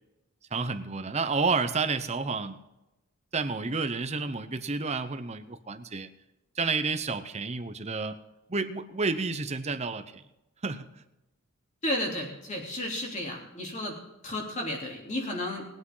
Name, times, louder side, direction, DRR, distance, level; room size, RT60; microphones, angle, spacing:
voice 1, 0.5-2.6 3.3-6.1 6.6-8.2 8.5-10.2 10.6-11.0, right 4 dB, 30° right, 9 dB, 0.8 m, -30 dB
voice 2, 11.8-14.0 14.2-15.6, left 1 dB, 30° left, -1 dB, 3.2 m, -33 dB
20.5 x 8.6 x 3.9 m, 0.94 s
head